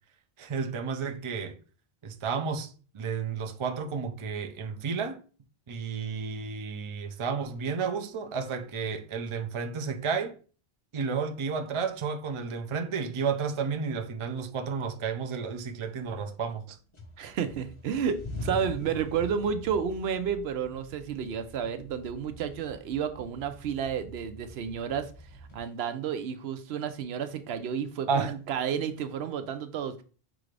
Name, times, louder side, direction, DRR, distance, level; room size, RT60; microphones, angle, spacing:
voice 1, 0.4-1.6 2.0-5.2 5.7-10.4 10.9-16.8 28.1-28.4, right 5 dB, 45° right, 0.4 m, -32 dB
sound 1, 14.4-15.1 15.5-16.6 16.9-25.6, left 1 dB, 30° left, 0.7 m, -44 dB
voice 2, 17.2-30.0, right 7 dB, 75° right, 0.8 m, -31 dB
5.9 x 2.5 x 3.2 m
omnidirectional pair, 1.1 m